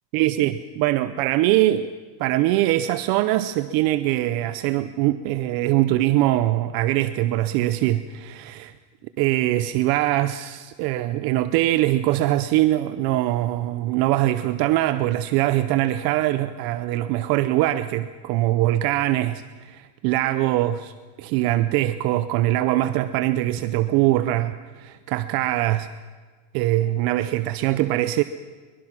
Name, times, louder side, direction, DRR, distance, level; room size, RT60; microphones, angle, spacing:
voice 1, 0.1-1.9 2.2-8.7 9.2-20.9 21.2-25.9 26.5-28.2, right 15 dB, 50° right, 12 dB, 0.7 m, -22 dB
23.5 x 21.0 x 5.9 m, 1.5 s
cardioid pair, 155°, 47 cm